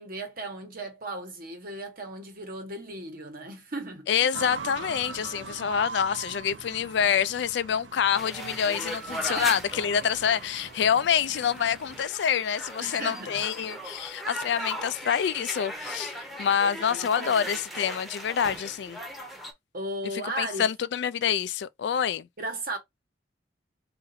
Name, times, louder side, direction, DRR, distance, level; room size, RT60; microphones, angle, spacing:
voice 1, 0.0-4.1 9.1-9.6 12.8-13.4 16.7-17.5 19.7-20.7 22.4-22.8, right 1 dB, 50° right, 1.1 m, -36 dB
voice 2, 4.1-16.1 16.4-19.0 20.4-22.3, left 8 dB, 65° left, 0.3 m, -26 dB
sound 1, 4.3-12.0, right 4 dB, 80° right, 0.7 m, -41 dB
sound 2, 8.1-19.5, equal, ahead, 0.8 m, -38 dB
3.8 x 2.6 x 4.1 m
head